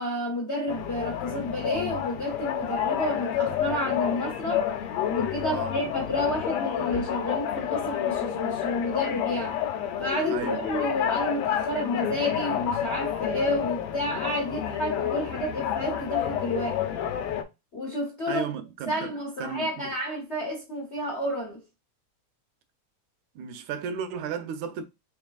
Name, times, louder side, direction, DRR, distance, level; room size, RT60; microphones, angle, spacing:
voice 1, 0.0-4.7 5.1-9.6 10.0-16.8 17.7-18.5 18.9-21.6, left 1 dB, 55° left, 0.7 m, -30 dB
sound 1, 0.7-17.4, left 10 dB, 90° left, 1.3 m, -29 dB
voice 2, 10.3-10.7 18.3-20.0 23.4-24.8, right 7 dB, 85° right, 2.0 m, -34 dB
4.6 x 3.4 x 2.3 m
omnidirectional pair, 3.3 m